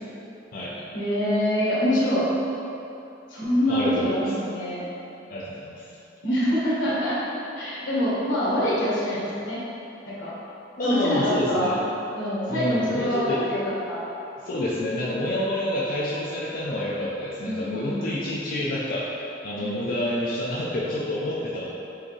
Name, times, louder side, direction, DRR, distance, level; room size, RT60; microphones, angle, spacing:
voice 1, 0.9-2.3 3.3-4.9 6.2-7.2 7.5-9.6 10.1-10.3 10.8-11.7 12.1-13.6 13.9-14.1 17.4-18.2 19.6-19.8, equal, 85° left, -7 dB, 1.3 m, -25 dB
voice 2, 3.7-4.1 5.3-5.8 10.8-11.8 12.5-13.4 14.4-21.7, left 1 dB, 50° left, -7 dB, 0.5 m, -28 dB
4.7 x 3.5 x 3.2 m, 2.9 s
head